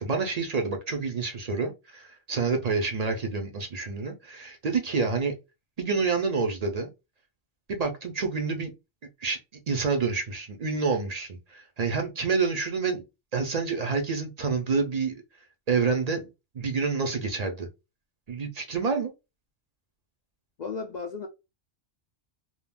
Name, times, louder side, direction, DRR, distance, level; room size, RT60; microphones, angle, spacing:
voice 1, 0.0-5.4 5.8-6.9 7.7-8.7 9.2-9.4 9.7-13.0 13.3-15.1 15.7-16.2 16.5-17.7 18.3-19.1, right 4 dB, 45° right, 0.5 m, -28 dB
voice 2, 20.6-21.3, left 4 dB, 60° left, 0.4 m, -34 dB
2.3 x 2.2 x 3.4 m
omnidirectional pair, 1.2 m